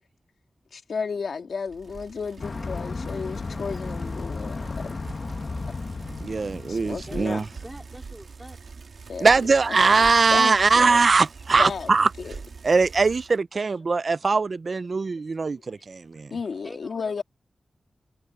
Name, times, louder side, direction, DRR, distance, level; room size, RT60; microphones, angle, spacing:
voice 1, 0.7-4.7 6.7-7.4 9.1-11.0 11.6-11.9 12.2-12.4 16.3-17.2, left 5 dB, 85° left, 2.7 m, -33 dB
Bicycle, 1.7-13.4, right 4 dB, 70° right, 1.6 m, -43 dB
sound 1, 2.4-7.9, left 3 dB, 45° left, 1.2 m, -34 dB
voice 2, 6.2-7.4 9.2-12.1 12.6-16.3, right 4 dB, 50° right, 0.3 m, -21 dB
voice 3, 7.1-8.6 16.6-17.2, equal, 5° right, 4.1 m, -45 dB
wide cardioid pair, 125°, 0 cm